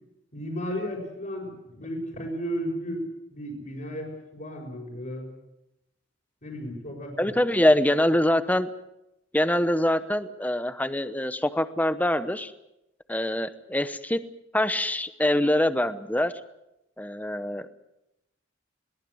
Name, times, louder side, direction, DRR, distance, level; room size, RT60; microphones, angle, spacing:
voice 1, 0.3-5.3 6.4-7.3, equal, 50° left, -5 dB, 5.2 m, -34 dB
voice 2, 7.2-8.7 9.3-12.5 13.1-14.2 14.5-16.3 17.0-17.7, left 1 dB, 10° left, 12 dB, 0.9 m, -24 dB
22.0 x 18.0 x 7.9 m, 0.88 s
head